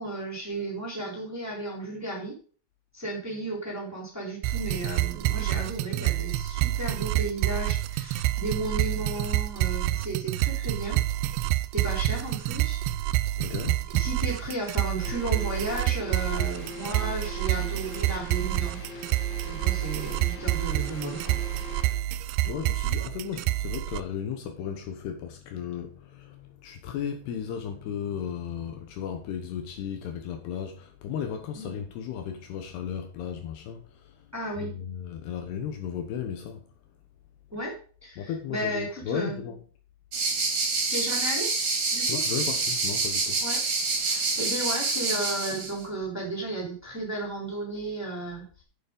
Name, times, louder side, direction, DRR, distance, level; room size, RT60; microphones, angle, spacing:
voice 1, 0.0-2.4 2.9-11.0 11.7-12.8 13.9-18.8 19.4-21.4 31.5-31.7 34.3-34.7 37.5-39.4 40.9-41.5 41.9-42.2 43.4-43.6 44.0-48.6, right 1 dB, 5° right, 3.0 m, -34 dB
sound 1, 4.4-24.0, right 15 dB, 85° right, 2.3 m, -28 dB
voice 2, 13.4-13.9 22.4-34.2 34.6-36.6 38.2-39.6 42.1-43.4, left 8 dB, 70° left, 3.0 m, -35 dB
sound 2, 15.0-22.0, left 2 dB, 55° left, 1.2 m, -42 dB
sound 3, 40.1-45.7, right 3 dB, 40° right, 3.1 m, -27 dB
9.3 x 7.0 x 5.1 m
omnidirectional pair, 5.1 m